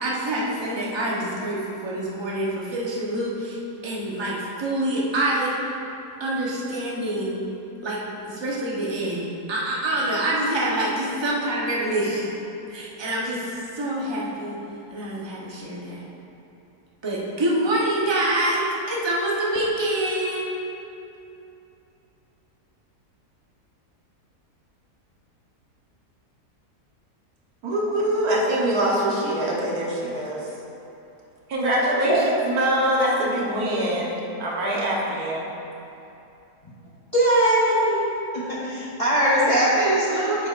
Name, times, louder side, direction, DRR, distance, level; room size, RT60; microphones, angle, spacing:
voice 1, 0.0-5.6 6.2-7.4 7.8-12.3 12.7-14.6 14.9-16.0 17.0-20.5, right 1 dB, 20° right, -5 dB, 0.9 m, -26 dB
voice 2, 27.6-30.4 31.5-32.2 32.4-34.1 34.4-35.5, right 1 dB, 70° right, -4 dB, 1.6 m, -23 dB
voice 3, 37.1-38.0 38.3-40.5, right 1 dB, 25° left, -8 dB, 1.0 m, -21 dB
9.3 x 7.1 x 2.5 m, 2.8 s
omnidirectional pair, 1.7 m